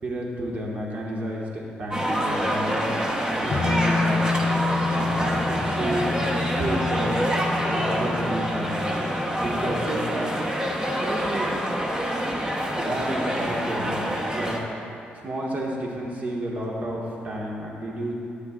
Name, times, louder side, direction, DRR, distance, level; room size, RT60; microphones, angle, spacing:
voice 1, 0.0-2.9 3.3-4.3 4.9-6.1 6.6-7.2 7.6-8.8 9.3-10.3 11.0-11.5 12.7-14.7 15.1-18.1, right 1 dB, 45° right, -3 dB, 1.7 m, -31 dB
sound 1, 1.9-14.6, equal, 20° right, 1.1 m, -26 dB
sound 2, 3.5-12.6 12.9-13.0, left 4 dB, 50° left, 0.3 m, -30 dB
11.5 x 8.3 x 2.5 m, 2.6 s
cardioid pair, 90°, 4 cm